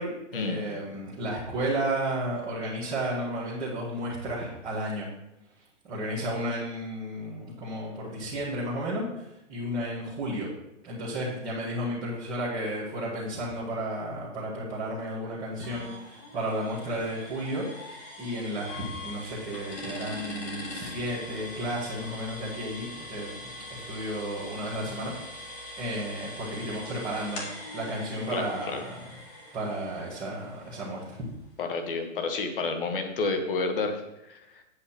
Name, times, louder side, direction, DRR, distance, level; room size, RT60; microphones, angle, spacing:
voice 1, 0.0-5.1 5.9-10.5 10.8-25.1 25.8-29.1 29.5-31.2, right 1 dB, 10° right, -10 dB, 1.6 m, -33 dB
sound 1, 15.6-31.3, left 1 dB, 25° left, 1.9 m, -42 dB
voice 2, 31.6-34.6, left 3 dB, 45° left, 5 dB, 1.5 m, -30 dB
8.3 x 8.0 x 4.4 m, 0.86 s
hypercardioid pair, 175°, 38 cm